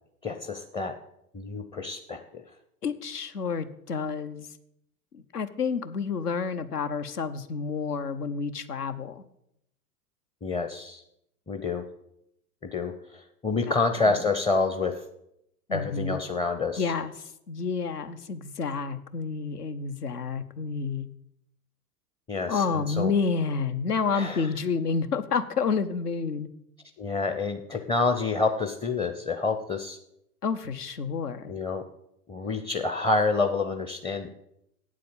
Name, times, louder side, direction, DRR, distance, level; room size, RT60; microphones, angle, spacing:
voice 1, 0.2-0.9 1.3-2.4 10.4-11.0 11.5-11.8 12.6-15.0 15.7-16.8 22.3-23.1 24.1-24.5 27.0-30.0 31.5-31.8 32.3-34.3, left 3 dB, 10° left, 6 dB, 0.5 m, -28 dB
voice 2, 2.8-4.5 5.1-9.2 13.7-14.2 15.7-16.2 16.8-17.1 17.5-21.1 22.5-26.5 30.4-31.5, left 5 dB, 80° left, 10 dB, 1.0 m, -29 dB
8.4 x 7.6 x 7.4 m, 0.78 s
figure-of-eight pair, 90°, 46 cm